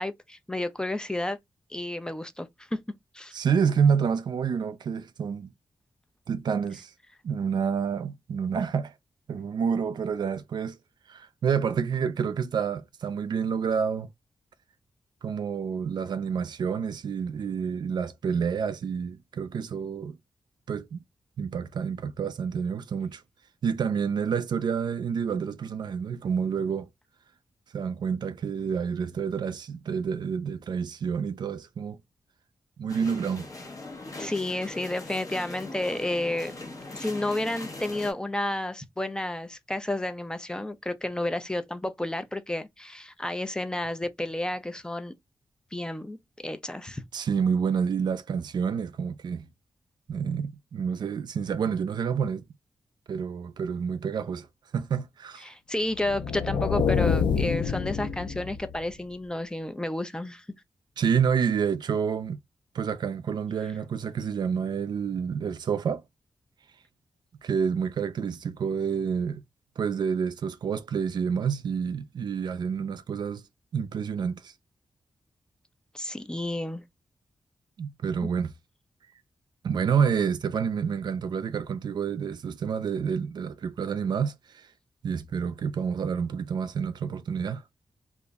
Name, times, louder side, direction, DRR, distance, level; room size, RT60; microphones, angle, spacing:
voice 1, 0.0-1.4 1.7-2.8 3.1-3.3 34.2-36.6 36.9-45.1 45.7-47.0 55.4-60.4 75.9-76.8 78.2-78.3, left 1 dB, 10° left, 0.3 m, -31 dB
voice 2, 3.3-5.5 6.3-6.9 7.2-8.9 9.3-10.8 11.1-14.1 15.2-20.2 20.7-21.0 21.4-23.2 23.6-26.9 27.7-32.0 32.8-33.5 47.1-49.4 50.1-52.4 53.1-54.5 54.7-55.5 61.0-62.4 62.7-66.0 67.4-69.4 69.8-73.4 73.7-74.5 77.8-78.5 79.6-84.3 85.0-87.6, right 6 dB, 65° right, 0.3 m, -28 dB
sound 1, 32.9-38.1, left 2 dB, 45° left, 0.9 m, -41 dB
sound 2, 56.0-58.9, left 6 dB, 75° left, 0.4 m, -27 dB
2.4 x 2.0 x 3.4 m
wide cardioid pair, 100°, 8 cm